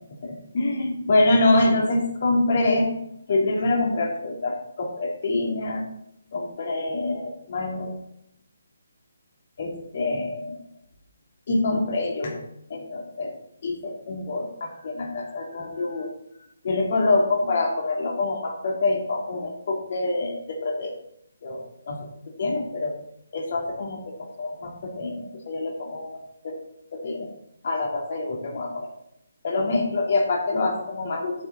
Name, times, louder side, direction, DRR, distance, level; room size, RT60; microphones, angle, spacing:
voice 1, 0.2-2.9 3.3-5.9 6.3-7.9 9.6-10.6 11.5-12.4 12.7-13.3 13.6-16.1 16.6-21.0 21.4-22.1 22.4-22.9 23.3-26.6 26.9-27.3 27.6-28.9 29.4-31.5, left 2 dB, 45° left, 0 dB, 3.1 m, -25 dB
11.0 x 9.2 x 4.1 m, 0.77 s
figure-of-eight pair, 145°, 0 cm